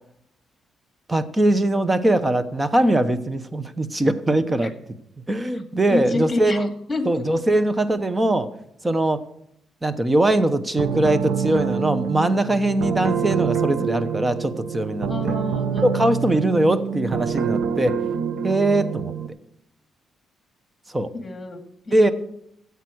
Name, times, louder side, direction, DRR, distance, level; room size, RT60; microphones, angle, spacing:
voice 1, 1.1-4.7 5.3-6.7 7.0-8.5 8.8-9.2 9.8-15.3 15.8-18.0 18.4-19.1 20.9-21.1 21.9-22.1, right 1 dB, 20° right, 12 dB, 1.0 m, -21 dB
voice 2, 5.9-6.6 6.9-7.0 15.1-15.8 21.1-21.6 21.9-22.1, left 2 dB, 25° left, 5 dB, 2.3 m, -27 dB
sound 1, 10.8-19.3, right 7 dB, 80° right, 1.0 m, -26 dB
13.5 x 8.3 x 6.3 m, 0.75 s
cardioid pair, 90°, 0 cm